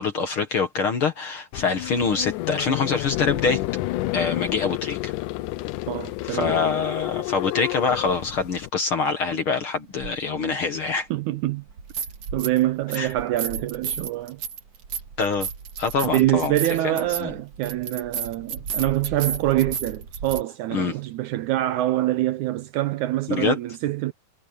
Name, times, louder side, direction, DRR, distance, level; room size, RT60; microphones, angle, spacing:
voice 1, 0.0-3.6 4.1-5.1 6.3-11.1 12.9-13.1 15.2-15.5 15.8-16.6 16.8-16.9 17.2-17.3 20.7-20.9 23.3-23.6, left 5 dB, 50° left, 1.9 m, -25 dB
sound 1, 1.5-8.7, left 17 dB, 80° left, 2.2 m, -30 dB
voice 2, 5.9-6.6 11.1-11.6 12.3-14.4 16.0-24.1, right 15 dB, 75° right, 1.9 m, -25 dB
sound 2, 10.0-10.1 11.7-12.6 12.9-20.4, right 6 dB, 50° right, 2.9 m, -32 dB
omnidirectional pair, 3.9 m